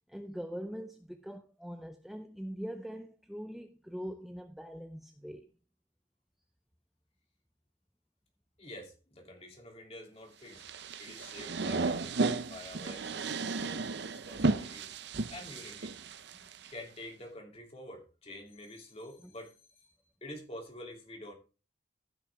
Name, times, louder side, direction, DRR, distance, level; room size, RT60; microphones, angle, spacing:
voice 1, 0.1-5.5, equal, ahead, 0.6 m, -42 dB
voice 2, 8.6-10.6 11.0-14.9 15.3-15.9 16.7-21.3, left 1 dB, 30° left, 2.9 m, -48 dB
sound 1, 10.6-16.7, right 3 dB, 60° right, 0.6 m, -34 dB
15.0 x 6.2 x 3.4 m
head